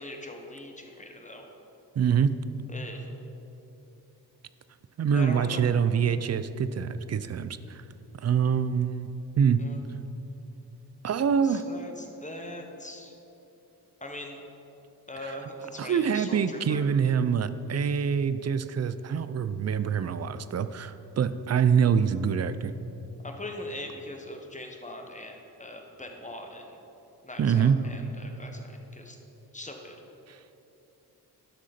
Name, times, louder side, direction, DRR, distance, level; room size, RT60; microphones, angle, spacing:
voice 1, 0.0-1.5 2.7-3.1 5.1-5.6 9.6-9.8 11.4-13.2 14.0-14.4 15.1-16.8 23.2-26.7 27.2-29.2 29.5-30.0, left 1 dB, 20° left, 3 dB, 1.3 m, -41 dB
voice 2, 2.0-2.3 5.0-7.8 8.2-9.1 9.4-9.6 11.0-11.6 15.2-15.3 15.8-22.7 27.4-27.8 30.3-30.4, right 7 dB, 40° right, 13 dB, 0.5 m, -25 dB
11.5 x 6.2 x 4.3 m, 2.9 s
cardioid pair, 60°, 40 cm